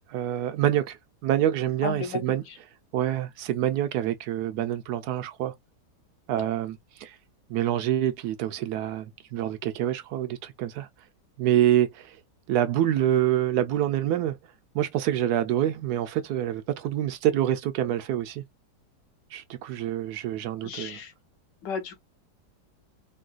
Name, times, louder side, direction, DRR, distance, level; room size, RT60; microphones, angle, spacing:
voice 1, 0.1-1.0 1.2-2.4 2.9-5.5 6.3-7.2 7.5-10.9 11.4-12.2 12.5-14.4 14.7-18.4 19.3-21.0, right 12 dB, 70° right, 1.0 m, -26 dB
voice 2, 1.8-2.2 20.6-21.1 21.6-22.0, left 6 dB, 80° left, 1.5 m, -33 dB
3.8 x 2.2 x 2.4 m
omnidirectional pair, 1.9 m